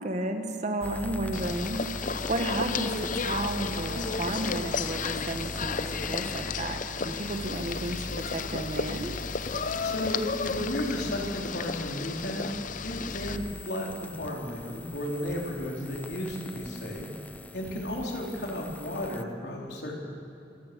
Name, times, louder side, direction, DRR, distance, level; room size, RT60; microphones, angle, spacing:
voice 1, 0.0-9.2, right 1 dB, 40° right, 5 dB, 1.5 m, -33 dB
sound 1, 0.8-19.2, left 1 dB, 10° left, 0.4 m, -41 dB
sound 2, 1.3-13.4, left 5 dB, 45° left, 0.6 m, -33 dB
sound 3, 7.8-7.9 8.7-8.8 9.8-10.3 10.8-11.3 12.2-12.4 13.1-13.4 14.1-14.3 15.2-15.7 16.5-16.6 17.6-17.8 18.4-18.5, right 1 dB, 80° right, 3.2 m, -51 dB
voice 2, 9.8-12.5 12.8-17.1 17.5-20.0, left 1 dB, 70° left, -1 dB, 3.9 m, -33 dB
26.5 x 16.0 x 6.8 m, 2.7 s
head